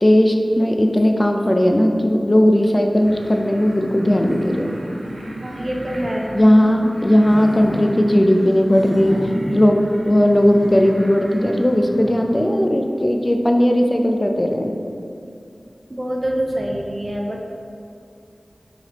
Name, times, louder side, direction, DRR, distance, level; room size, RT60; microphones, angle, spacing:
voice 1, 0.0-4.7 6.3-9.2 9.5-9.8 10.1-14.7, left 1 dB, 25° left, 3 dB, 0.4 m, -16 dB
sound 1, 3.0-12.4, right 1 dB, 85° right, 0.6 m, -31 dB
voice 2, 5.4-6.4 15.9-17.5, equal, 35° right, 0 dB, 0.5 m, -25 dB
5.4 x 3.3 x 2.9 m, 2.5 s
wide cardioid pair, 65°, 0 cm